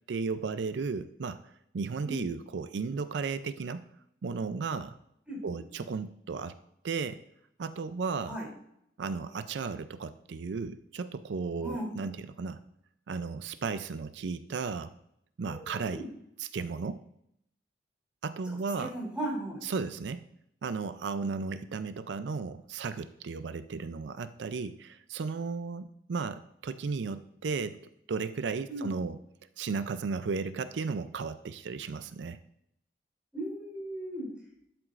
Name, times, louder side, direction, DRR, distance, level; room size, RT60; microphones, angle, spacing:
voice 1, 0.1-3.9 4.2-4.9 5.4-6.6 6.8-7.2 7.6-8.4 9.0-12.6 13.1-14.9 15.4-16.0 16.4-17.0 18.2-18.9 19.6-20.3 20.6-27.8 28.1-29.2 29.6-32.4, right 4 dB, 85° right, 12 dB, 0.4 m, -35 dB
voice 2, 5.3-5.6 8.3-8.5 11.6-11.9 15.4-16.1 18.8-19.6 28.7-28.9 33.3-34.3, right 1 dB, 5° right, -5 dB, 3.0 m, -37 dB
12.0 x 7.7 x 2.5 m, 0.75 s
head